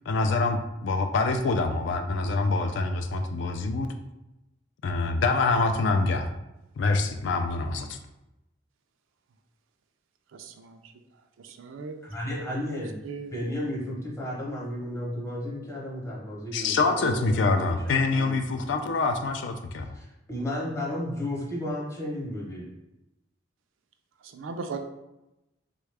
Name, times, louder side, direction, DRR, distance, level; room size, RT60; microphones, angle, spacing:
voice 1, 0.1-3.9 4.8-6.3 6.8-8.0 16.5-19.9, left 3 dB, 65° left, 6 dB, 0.3 m, -25 dB
voice 2, 10.3-10.9 11.4-12.0 12.6-12.7 13.0-13.4 24.2-24.8, right 4 dB, 85° right, 7 dB, 0.4 m, -38 dB
voice 3, 12.0-12.9 13.3-18.4 19.9-22.7, left 1 dB, 15° left, -3 dB, 0.7 m, -33 dB
3.5 x 2.3 x 3.2 m, 0.93 s
head